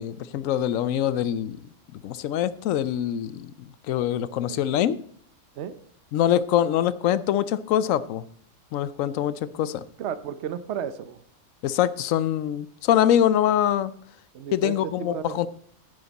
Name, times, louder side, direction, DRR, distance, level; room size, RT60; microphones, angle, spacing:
voice 1, 0.0-1.6 1.9-5.0 6.1-8.2 8.7-9.8 11.6-13.9 14.5-15.5, left 11 dB, 85° left, 17 dB, 1.0 m, -24 dB
voice 2, 10.0-11.2 14.3-15.5, right 8 dB, 65° right, 13 dB, 1.0 m, -33 dB
10.5 x 9.5 x 4.0 m, 0.63 s
omnidirectional pair, 1.3 m